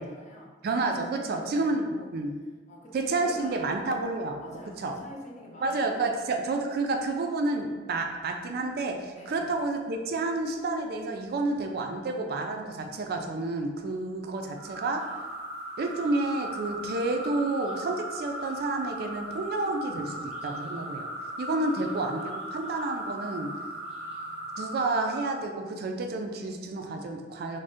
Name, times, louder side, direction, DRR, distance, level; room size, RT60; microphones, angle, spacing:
voice 1, 0.0-2.1 2.7-3.8 4.4-6.2 9.1-9.6 21.6-22.2, left 1 dB, 40° left, -1 dB, 0.5 m, -47 dB
voice 2, 0.6-2.3 2.9-4.9 5.6-15.0 15.8-21.1 21.4-23.5 24.6-27.6, right 2 dB, 55° right, 4 dB, 0.3 m, -30 dB
sound 1, 14.5-25.4, right 1 dB, 5° right, 0.7 m, -38 dB
2.6 x 2.1 x 3.4 m, 1.3 s
head